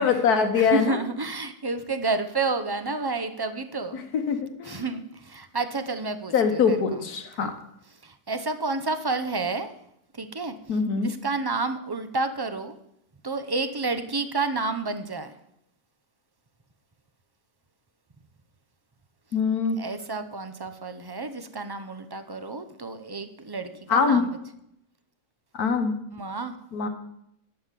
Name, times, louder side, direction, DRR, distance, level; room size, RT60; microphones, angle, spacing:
voice 1, 0.0-1.0 3.9-4.0 4.3-4.8 6.3-7.5 10.7-11.1 19.3-19.8 23.9-24.2 25.5-25.9 26.7-26.9, left 5 dB, 85° left, 6 dB, 1.7 m, -23 dB
voice 2, 0.5-4.0 4.6-7.0 7.4-7.5 8.0-9.7 10.2-12.7 13.2-15.3 19.8-24.3 26.1-26.6, right 3 dB, 30° right, 9 dB, 0.5 m, -30 dB
12.0 x 5.7 x 8.2 m, 0.76 s
omnidirectional pair, 1.6 m